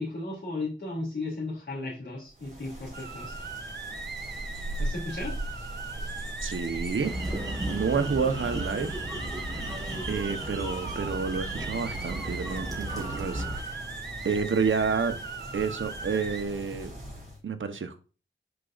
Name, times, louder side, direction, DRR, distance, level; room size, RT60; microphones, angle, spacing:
voice 1, 0.0-3.4 4.8-5.3, left 2 dB, 65° left, 2.9 m, -35 dB
sound 1, 2.3-17.4, right 1 dB, 35° right, 4.5 m, -40 dB
sound 2, 2.9-16.4, right 4 dB, 55° right, 1.3 m, -40 dB
voice 2, 6.4-7.2 7.7-9.0 10.1-13.4 14.2-15.2 15.5-16.9 17.4-18.0, right 5 dB, 75° right, 1.1 m, -29 dB
sound 3, 7.0-13.6, right 1 dB, 15° right, 3.9 m, -35 dB
11.0 x 5.1 x 2.6 m
wide cardioid pair, 75°, 20 cm